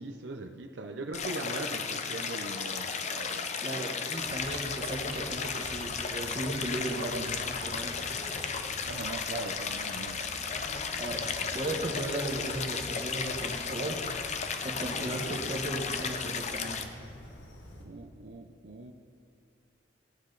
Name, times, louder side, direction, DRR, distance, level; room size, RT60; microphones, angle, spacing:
voice 1, 0.0-3.5 6.9-7.4 8.9-10.4 14.9-15.3 17.8-18.9, right 2 dB, 80° right, 4 dB, 0.7 m, -41 dB
Stream, 1.1-16.9, left 5 dB, 40° left, 0.7 m, -34 dB
voice 2, 3.6-8.1 11.0-11.3 11.5-14.0 14.6-16.9, right 1 dB, 35° right, 0 dB, 1.4 m, -36 dB
sound 1, 4.2-17.8, left 1 dB, 85° left, 1.7 m, -48 dB
17.5 x 8.3 x 4.0 m, 2.4 s
head